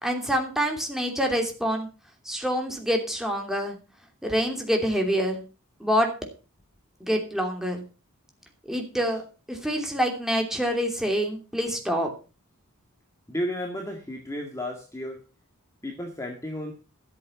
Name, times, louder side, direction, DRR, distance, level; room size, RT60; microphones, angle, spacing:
voice 1, 0.0-1.9 2.2-3.7 4.2-5.4 5.8-6.1 7.0-7.8 8.7-12.1, equal, ahead, 2 dB, 2.9 m, -26 dB
voice 2, 13.3-15.2 15.8-16.7, equal, 15° left, 1 dB, 1.9 m, -33 dB
13.0 x 7.8 x 6.0 m, 0.34 s
head